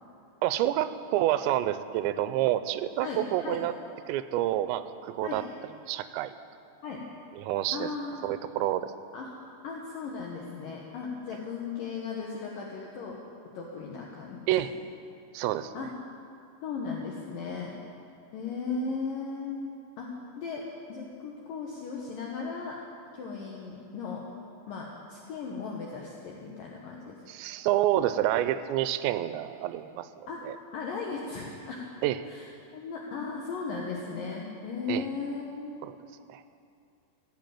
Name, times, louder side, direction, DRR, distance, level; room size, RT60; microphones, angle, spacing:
voice 1, 0.4-3.7 4.1-5.4 5.9-6.3 7.4-7.9 8.2-8.9 14.5-14.7 15.3-15.7 27.3-30.1 30.4-30.6 32.0-32.2 34.9-35.0 35.8-36.0 36.3-36.4, right 13 dB, 90° right, 12 dB, 2.8 m, -28 dB
voice 2, 3.0-3.6 5.2-5.4 6.8-7.0 7.7-8.3 9.1-9.3 9.6-13.2 13.5-14.7 15.7-15.9 16.6-17.8 18.3-19.6 20.0-20.1 20.4-22.8 23.1-24.2 24.7-27.2 30.3-30.4 30.7-31.9 32.3-32.5 32.7-35.9, left 4 dB, 70° left, -2 dB, 2.3 m, -36 dB
16.0 x 7.8 x 9.0 m, 2.5 s
omnidirectional pair, 5.1 m